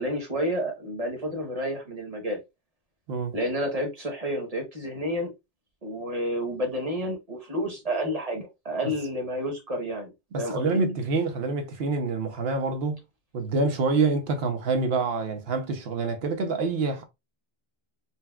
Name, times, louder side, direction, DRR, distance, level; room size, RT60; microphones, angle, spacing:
voice 1, 0.0-2.4 3.3-5.3 5.8-10.8, equal, 35° right, 1.0 m, -30 dB
voice 2, 10.3-13.0 13.3-17.0, right 3 dB, 65° right, 0.9 m, -26 dB
4.1 x 2.2 x 2.2 m
omnidirectional pair, 1.1 m